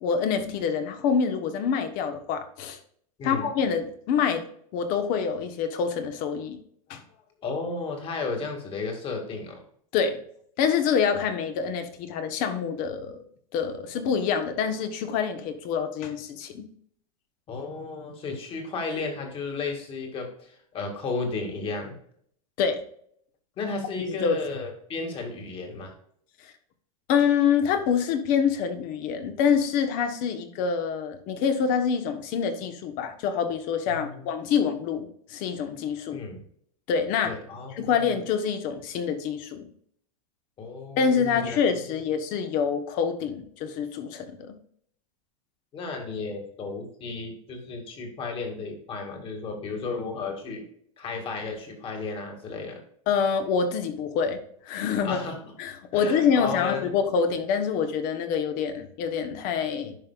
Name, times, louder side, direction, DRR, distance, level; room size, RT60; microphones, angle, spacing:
voice 1, 0.0-2.8 3.2-4.4 4.7-6.6 6.9-7.0 9.9-10.2 10.6-13.2 13.5-16.7 22.6-22.8 24.1-24.4 27.1-36.2 36.9-37.3 37.7-39.7 41.0-44.5 53.1-54.4 54.6-55.2 55.6-60.0, left 6 dB, 50° left, 8 dB, 1.2 m, -26 dB
voice 2, 7.4-9.6 17.5-21.9 23.6-25.9 33.9-34.3 36.1-36.4 37.3-37.9 40.6-42.0 45.7-50.6 51.0-52.8 55.0-55.4 55.9-56.9, left 4 dB, 30° left, 3 dB, 2.2 m, -33 dB
10.5 x 5.4 x 2.4 m, 0.63 s
supercardioid pair, 135°, 18 cm